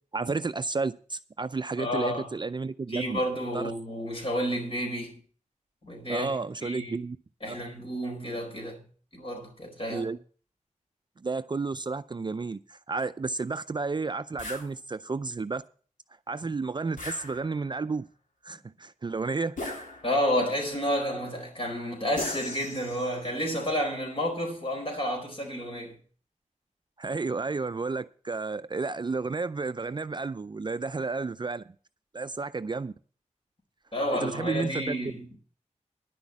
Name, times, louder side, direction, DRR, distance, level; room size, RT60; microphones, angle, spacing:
voice 1, 0.1-3.2 3.5-3.7 6.1-7.2 7.4-7.5 9.9-10.2 11.2-15.6 16.3-18.1 18.4-19.6 27.0-31.6 32.1-32.9 34.1-35.0, right 4 dB, 35° right, 0.4 m, -32 dB
voice 2, 1.8-2.3 2.9-5.2 5.8-6.3 6.6-6.9 7.4-8.8 9.1-10.1 18.5-18.6 20.0-26.0 33.9-35.3, equal, 45° left, 4.7 m, -30 dB
sound 1, 14.4-14.7 17.0-17.8 19.6-20.4 22.2-23.3, left 2 dB, 80° left, 3.2 m, -38 dB
11.0 x 6.2 x 8.3 m
wide cardioid pair, 95°, 13 cm